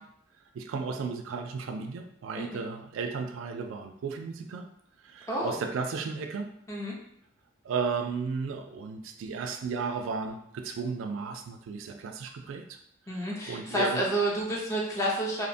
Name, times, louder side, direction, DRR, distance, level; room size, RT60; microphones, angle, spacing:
voice 1, 0.5-4.7 5.0-6.5 7.6-12.8 13.1-14.1, right 5 dB, 90° right, 5 dB, 0.3 m, -34 dB
voice 2, 13.1-15.5, right 1 dB, 15° left, -3 dB, 0.5 m, -29 dB
2.7 x 2.1 x 2.6 m, 0.74 s
head